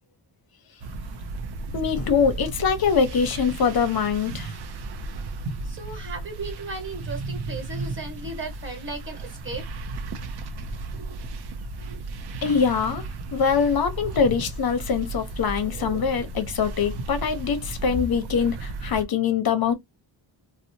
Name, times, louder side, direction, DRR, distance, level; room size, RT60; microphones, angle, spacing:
sound 1, 0.8-19.0, right 3 dB, 55° right, 0.5 m, -34 dB
voice 1, 1.7-4.5 12.4-13.0 13.3-19.7, left 6 dB, 50° left, 0.7 m, -23 dB
voice 2, 5.6-9.6 10.9-11.2 11.8-12.0, right 3 dB, 25° right, 1.3 m, -36 dB
2.7 x 2.1 x 2.6 m
wide cardioid pair, 165°, 47 cm